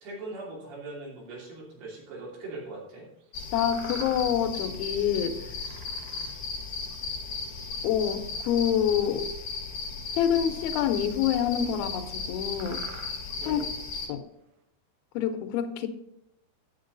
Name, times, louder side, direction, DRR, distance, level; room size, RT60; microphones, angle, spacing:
voice 1, 0.0-3.1 13.4-13.7, right 2 dB, 90° right, -3 dB, 4.9 m, -40 dB
sound 1, 1.6-1.7 2.3-2.4 3.2-3.3 3.7-4.6 4.9-5.2 5.6-6.7 7.3-7.6 8.4-8.6 9.9-10.0 10.6-10.7 11.5-11.6 12.2-12.3 12.5-14.1, right 5 dB, 65° right, 2.3 m, -48 dB
sound 2, 3.3-14.1, left 4 dB, 55° left, 1.4 m, -36 dB
voice 2, 3.5-5.4 7.8-9.2 10.2-12.8 13.5-13.6 14.1-14.2 15.1-15.9, left 9 dB, 75° left, 8 dB, 2.6 m, -26 dB
9.6 x 8.7 x 3.9 m, 0.87 s
omnidirectional pair, 4.5 m